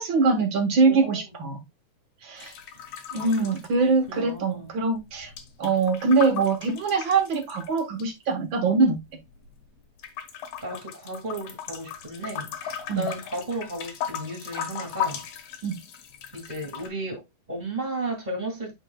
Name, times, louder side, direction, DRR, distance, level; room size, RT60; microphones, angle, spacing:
voice 1, 0.0-1.6 2.2-2.5 3.1-5.3 5.6-9.0 12.9-13.1 15.6-15.8, right 4 dB, 50° right, 1.6 m, -23 dB
voice 2, 0.9-1.2 3.2-3.5 4.1-4.7 10.6-15.2 16.3-18.7, right 1 dB, 15° right, 2.0 m, -34 dB
sound 1, 2.4-4.4 4.7-8.0 8.7-9.6 10.0-16.9, left 9 dB, 80° left, 2.6 m, -37 dB
9.8 x 4.6 x 2.2 m
omnidirectional pair, 3.4 m